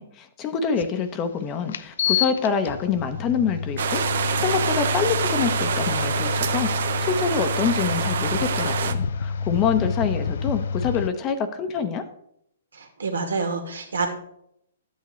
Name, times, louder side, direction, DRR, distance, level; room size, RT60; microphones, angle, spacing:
voice 1, 0.0-12.1, left 6 dB, 30° left, 8 dB, 0.9 m, -26 dB
sound 1, 0.8-0.9 1.7-11.1, left 5 dB, 70° left, 0.5 m, -28 dB
sound 2, 3.8-8.9, right 7 dB, 70° right, 0.8 m, -26 dB
voice 2, 12.7-14.1, right 4 dB, 85° right, 4 dB, 2.1 m, -27 dB
12.0 x 8.4 x 3.2 m, 0.73 s
hypercardioid pair, 135°, 0 cm